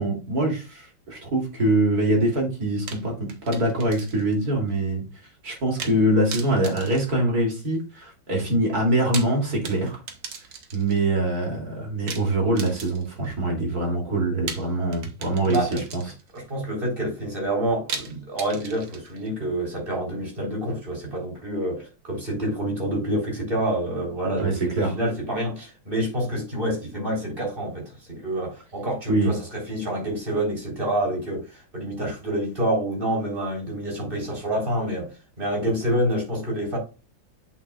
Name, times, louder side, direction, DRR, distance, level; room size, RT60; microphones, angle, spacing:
voice 1, 0.0-5.0 5.4-10.0 10.7-15.6 15.9-16.0 24.4-25.0 29.1-29.3, right 1 dB, 50° right, 3.4 m, -24 dB
sound 1, 2.9-4.4 4.7-4.8 5.8-6.0 6.3-7.8 8.9-11.0 12.1-13.3 14.5-16.4 17.9-19.3, right 5 dB, 65° right, 1.9 m, -38 dB
voice 2, 15.5-15.8 16.3-35.1 35.4-36.8, right 1 dB, 25° right, 4.1 m, -27 dB
8.2 x 7.6 x 2.4 m
omnidirectional pair, 2.1 m